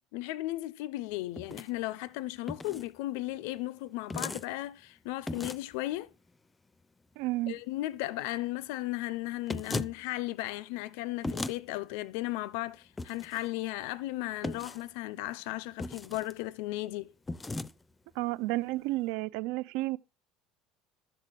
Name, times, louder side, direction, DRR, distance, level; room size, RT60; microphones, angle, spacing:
voice 1, 0.1-6.1 7.5-17.1, left 17 dB, 85° left, 0.5 m, -35 dB
sound 1, 1.4-1.7 2.5-2.9 4.1-4.5 5.3-5.7 9.5-9.9 11.2-11.6 13.0-13.4 14.4-14.8 15.8-16.3 17.3-17.7, left 2 dB, 10° left, 0.4 m, -36 dB
voice 2, 7.2-7.6 18.2-20.0, right 19 dB, 75° right, 0.5 m, -31 dB
13.0 x 4.5 x 7.5 m
cardioid pair, 150°, 0 cm